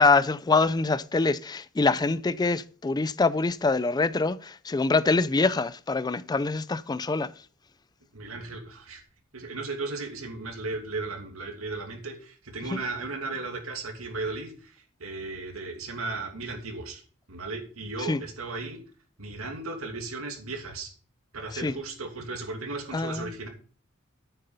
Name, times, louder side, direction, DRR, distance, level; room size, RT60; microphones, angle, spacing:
voice 1, 0.0-7.3 12.7-12.8 18.1-18.2 21.6-21.7 22.9-23.3, left 3 dB, 20° left, 0.4 m, -24 dB
voice 2, 8.1-9.0 9.3-17.0 17.3-18.8 19.2-20.9 21.3-23.5, right 3 dB, 85° right, 2.6 m, -35 dB
9.2 x 7.1 x 5.4 m
head